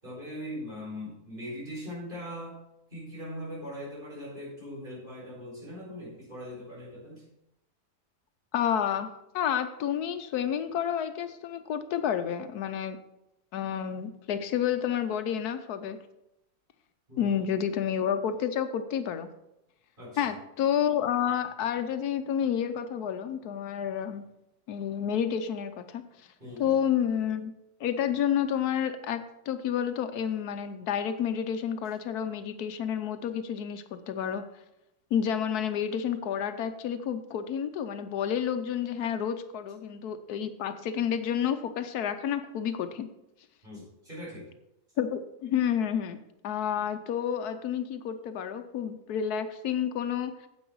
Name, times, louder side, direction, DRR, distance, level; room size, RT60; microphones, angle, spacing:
voice 1, 0.0-2.6 2.9-7.2 17.1-17.4 20.0-20.3 26.4-26.7 43.6-44.5, equal, 35° right, -5 dB, 4.6 m, -40 dB
voice 2, 8.5-9.1 9.3-13.0 13.5-16.0 17.2-19.3 20.2-24.2 24.7-26.0 26.6-27.5 27.8-34.4 35.1-43.1 45.0-46.2 46.4-50.5, left 8 dB, 85° left, 10 dB, 1.3 m, -30 dB
9.5 x 7.9 x 4.6 m, 0.87 s
omnidirectional pair, 1.6 m